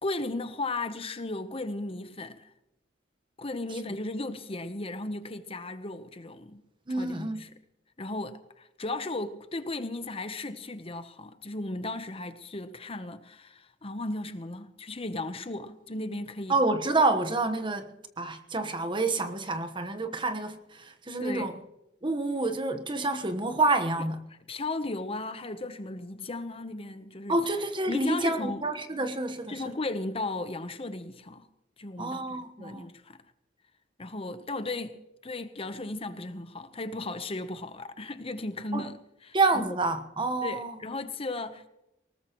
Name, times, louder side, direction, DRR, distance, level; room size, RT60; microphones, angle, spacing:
voice 1, 0.0-2.5 3.4-6.6 6.9-7.5 8.0-16.5 21.2-21.5 24.5-27.4 27.9-28.6 29.5-31.5 31.8-33.2 34.0-39.0 39.2-39.4 40.4-41.7, left 2 dB, 30° left, 0.9 m, -35 dB
voice 2, 6.9-7.4 16.5-21.5 22.0-24.2 27.3-29.6 32.0-32.9 38.7-38.9 39.3-40.8, right 2 dB, 25° right, 1.2 m, -28 dB
20.0 x 19.0 x 3.1 m
head